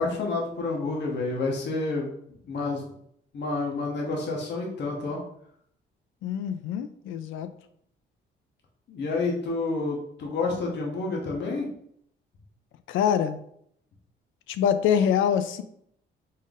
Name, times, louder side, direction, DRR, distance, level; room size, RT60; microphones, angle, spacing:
voice 1, 0.0-2.1 2.5-2.8 3.3-5.2 8.9-11.7, left 3 dB, 60° left, -1 dB, 1.1 m, -29 dB
voice 2, 6.2-7.5 12.9-13.4 14.5-15.6, left 8 dB, 80° left, 11 dB, 0.4 m, -25 dB
4.2 x 3.6 x 2.5 m, 0.69 s
cardioid pair, 90°, 20 cm